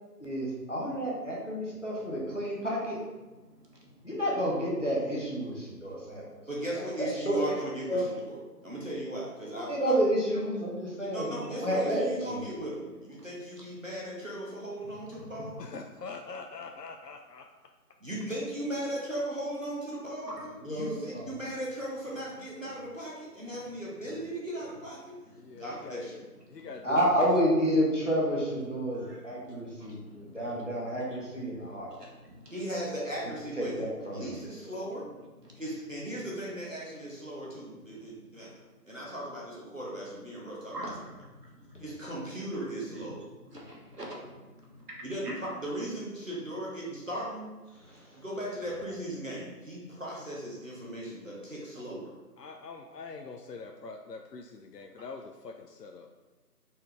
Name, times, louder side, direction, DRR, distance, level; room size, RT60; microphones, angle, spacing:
voice 1, 0.2-3.0 4.0-6.3 6.7-7.6 7.9-8.0 9.5-12.4 20.6-21.3 26.8-31.9 33.6-34.3 47.8-48.2, equal, 50° left, -5 dB, 1.1 m, -30 dB
voice 2, 3.2-4.2 5.9-6.0 13.2-13.3 13.6-13.7 14.8-15.5 20.2-20.6 20.9-21.1 22.7-22.8 23.5-23.7 25.2-25.6 26.4-26.7 28.8-30.6 31.1-31.2 31.5-32.6 34.2-34.3 34.9-35.6 37.4-38.6 40.7-41.9 42.9-43.0 43.4-45.4, right 1 dB, 75° right, -2 dB, 1.5 m, -47 dB
voice 3, 6.5-8.4 8.6-9.9 11.1-15.5 18.0-20.4 20.7-25.2 25.6-26.2 32.5-33.8 34.1-35.1 35.5-38.5 38.8-40.9 41.8-43.2 45.0-47.5 48.1-52.1, right 1 dB, 55° right, -5 dB, 1.1 m, -37 dB
voice 4, 15.6-17.5 25.4-26.2 26.5-27.0 52.4-56.1, left 4 dB, 85° left, 3 dB, 0.5 m, -44 dB
4.3 x 3.5 x 3.4 m, 1.2 s
figure-of-eight pair, 180°, 47 cm